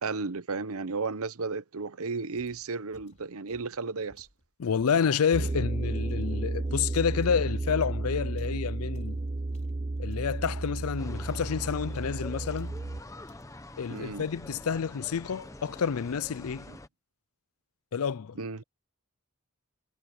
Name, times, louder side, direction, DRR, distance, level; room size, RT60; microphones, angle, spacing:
voice 1, 0.0-4.3 13.9-14.3 18.4-18.6, right 4 dB, 75° right, 0.8 m, -34 dB
sound 1, 2.4-5.6 6.1-10.5 10.7-12.9 13.3-13.7 13.9-14.3 14.6-15.0 15.3-15.7, left 1 dB, 30° left, 5.2 m, -61 dB
voice 2, 4.6-9.2 10.0-12.7 13.8-16.7 17.9-18.4, left 6 dB, 80° left, 0.5 m, -29 dB
sound 2, 5.3-13.0, right 2 dB, 30° right, 0.6 m, -32 dB
sound 3, 11.0-16.9, left 1 dB, 15° left, 0.8 m, -45 dB
head